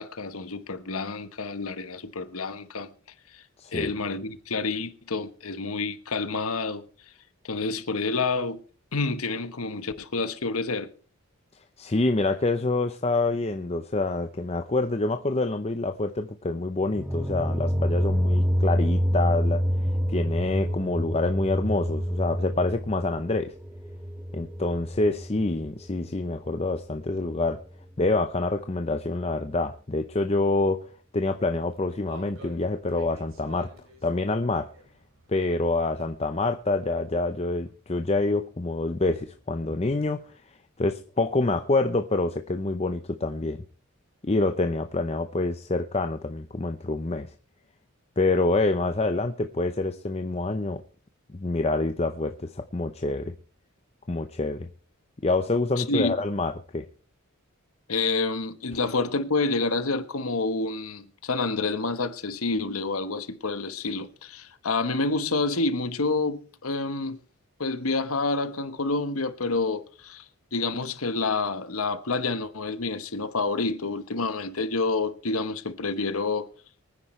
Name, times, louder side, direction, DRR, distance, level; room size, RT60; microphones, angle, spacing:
voice 1, 0.0-2.9 3.3-3.4 3.7-6.8 7.4-8.6 8.9-10.9 55.8-56.1 57.9-67.2 67.6-70.2 70.5-76.5, left 3 dB, 80° left, 1.2 m, -28 dB
voice 2, 3.6-3.9 11.8-19.6 20.1-23.5 24.3-27.6 28.0-30.8 31.1-33.7 34.0-34.7 35.3-40.3 40.8-43.6 44.2-47.3 48.2-50.8 51.3-53.3 54.1-54.7 55.2-56.8, left 2 dB, 30° left, 0.7 m, -26 dB
sound 1, 16.9-25.8, equal, 10° right, 0.7 m, -27 dB
sound 2, 31.2-37.7, right 2 dB, 65° right, 4.0 m, -52 dB
24.0 x 9.9 x 3.2 m
head